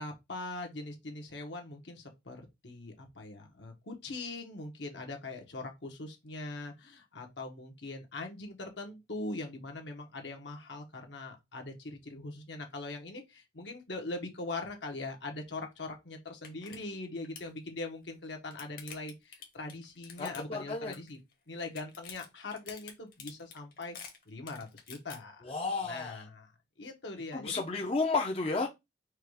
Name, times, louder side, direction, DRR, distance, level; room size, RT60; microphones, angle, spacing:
voice 1, 0.0-21.2 21.5-24.0 24.3-25.5 25.8-26.5 26.8-27.6, left 2 dB, 70° left, 1.2 m, -41 dB
sound 1, 15.8-15.9 16.3-16.8 17.0-17.5 18.1-20.7 20.9-21.3 21.6-25.2, left 7 dB, 50° left, 1.2 m, -48 dB
voice 2, 20.2-20.9 25.5-26.2 27.3-28.7, left 3 dB, 30° left, 0.5 m, -32 dB
4.6 x 2.4 x 4.8 m
head